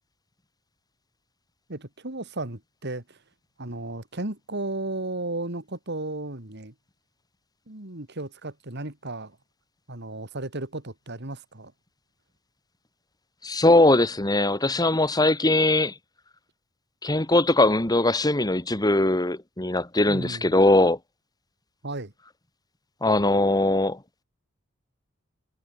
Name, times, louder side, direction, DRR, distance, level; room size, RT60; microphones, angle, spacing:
voice 1, 1.7-3.2 3.6-6.7 7.7-9.4 9.9-11.7 20.1-20.6 21.8-22.1, right 2 dB, 55° right, 3.1 m, -34 dB
voice 2, 13.4-15.9 17.0-21.0 23.0-24.0, left 2 dB, 20° left, 1.9 m, -21 dB
head